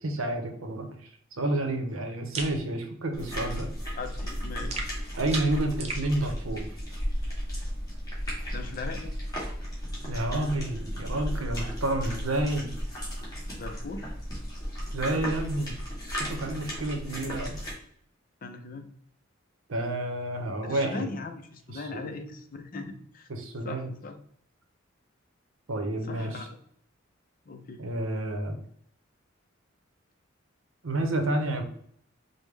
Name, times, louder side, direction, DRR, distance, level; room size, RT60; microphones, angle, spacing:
voice 1, 0.0-3.7 5.2-6.8 10.0-12.7 14.9-15.7 16.1-17.6 19.7-21.1 21.7-22.0 23.3-23.9 25.7-26.4 27.8-28.6 30.8-31.6, right 1 dB, 85° right, 4 dB, 0.8 m, -30 dB
sound 1, 2.3-2.6 4.7-6.1, right 3 dB, 30° right, 0.6 m, -35 dB
sound 2, 3.1-17.7, equal, 20° left, 1.6 m, -34 dB
voice 2, 4.0-4.9 8.5-9.1 13.5-14.1 18.4-18.9 20.6-23.3 23.6-24.2 26.0-26.5 27.5-27.8, left 3 dB, 45° left, 7 dB, 0.5 m, -39 dB
5.2 x 2.1 x 3.2 m, 0.64 s
head